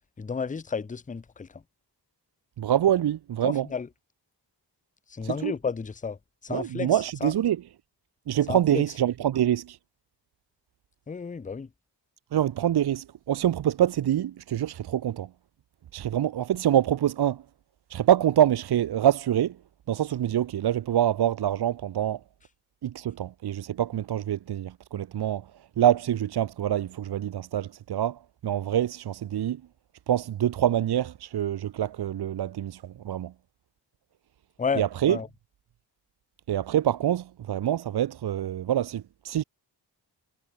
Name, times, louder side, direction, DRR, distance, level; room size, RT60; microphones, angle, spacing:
voice 1, 0.2-1.6 3.4-3.9 5.1-7.3 8.5-8.8 11.1-11.7 34.6-35.3, left 5 dB, 20° left, 0.4 m, -32 dB
voice 2, 2.6-3.7 5.2-5.5 6.5-7.6 8.3-9.8 12.3-15.3 15.9-17.4 17.9-19.6 19.9-22.2 22.8-25.5 25.8-29.6 30.1-33.3 34.8-35.2 36.5-39.4, right 11 dB, 60° right, 0.5 m, -25 dB
wide cardioid pair, 110°, 44 cm